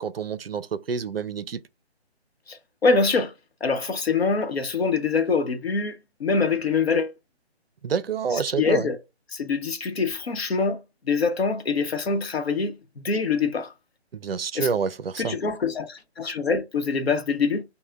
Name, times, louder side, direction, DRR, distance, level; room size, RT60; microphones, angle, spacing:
voice 1, 0.0-1.6 7.8-8.9 14.1-15.4, right 6 dB, 65° right, 0.5 m, -28 dB
voice 2, 2.5-3.3 3.6-7.1 8.3-9.0 9.3-13.7 14.5-14.7 15.2-17.6, left 4 dB, 65° left, 0.9 m, -25 dB
5.6 x 2.2 x 3.3 m
hypercardioid pair, 175°, 33 cm